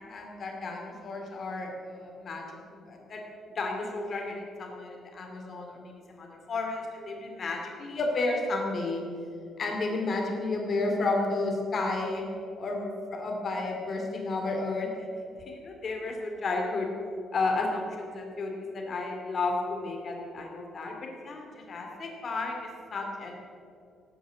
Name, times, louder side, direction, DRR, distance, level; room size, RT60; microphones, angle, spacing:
voice 1, 0.0-3.2 3.5-9.0 9.6-12.2 12.5-15.1 15.5-16.9 17.3-20.9 21.2-23.4, left 3 dB, 35° left, 1 dB, 2.6 m, -32 dB
17.0 x 9.2 x 7.9 m, 2.5 s
cardioid pair, 155°, 0 cm